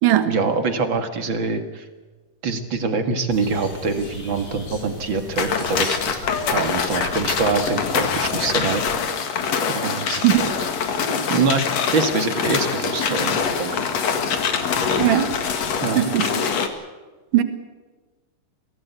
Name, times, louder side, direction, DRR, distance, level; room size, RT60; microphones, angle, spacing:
voice 1, 0.3-1.9 2.4-8.8 9.3-9.4 9.7-10.3 11.3-13.8 14.1-14.2 15.8-16.1, right 4 dB, 40° right, 7 dB, 2.3 m, -24 dB
sound 1, 3.3-8.8, left 3 dB, 75° left, 7.7 m, -38 dB
sound 2, 5.4-16.7, left 6 dB, 55° left, 2.8 m, -24 dB
voice 2, 15.0-15.3 16.0-16.3 17.3-17.4, right 13 dB, 75° right, 9 dB, 3.2 m, -17 dB
24.0 x 17.0 x 8.2 m, 1.3 s
omnidirectional pair, 3.8 m